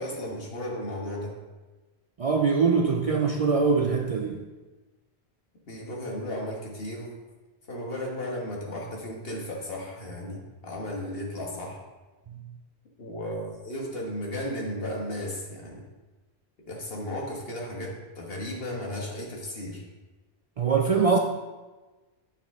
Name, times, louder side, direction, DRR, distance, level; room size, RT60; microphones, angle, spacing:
voice 1, 0.0-1.3 5.7-7.2 7.7-11.8 13.0-15.8 16.7-19.8, left 1 dB, 65° left, -1 dB, 1.5 m, -35 dB
voice 2, 2.2-4.4 20.6-21.2, right 5 dB, 60° right, 3 dB, 0.3 m, -23 dB
8.8 x 4.3 x 3.5 m, 1.2 s
omnidirectional pair, 1.1 m